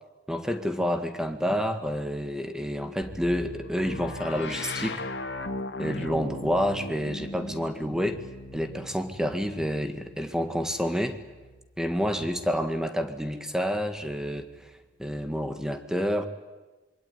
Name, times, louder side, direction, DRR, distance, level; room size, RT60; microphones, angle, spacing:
voice 1, 0.3-5.1 5.8-8.2 8.5-11.2 11.8-14.7 15.0-16.3, equal, 5° right, 8 dB, 1.8 m, -29 dB
sound 1, 3.0-12.8 13.8-14.9, left 2 dB, 80° left, 2.4 m, -39 dB
26.0 x 23.5 x 9.6 m, 1.2 s
head